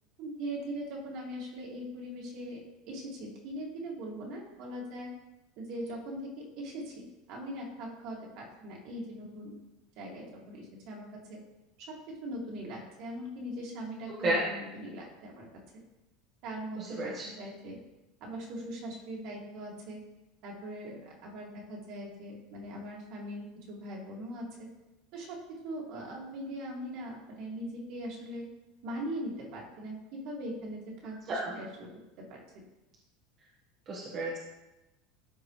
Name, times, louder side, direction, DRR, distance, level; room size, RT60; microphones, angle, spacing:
voice 1, 0.2-5.1 5.6-9.6 10.0-11.4 11.8-11.9 12.2-15.5 16.4-17.8 18.2-20.0 20.4-24.7 25.1-25.4 25.6-28.5 28.8-31.9 32.2-32.4, right 1 dB, 55° right, -2 dB, 2.2 m, -41 dB
voice 2, 16.8-17.3 31.3-31.5 33.9-34.4, right 1 dB, 35° right, -5 dB, 1.3 m, -31 dB
13.0 x 4.8 x 3.2 m, 1.0 s
supercardioid pair, 155°, 0 cm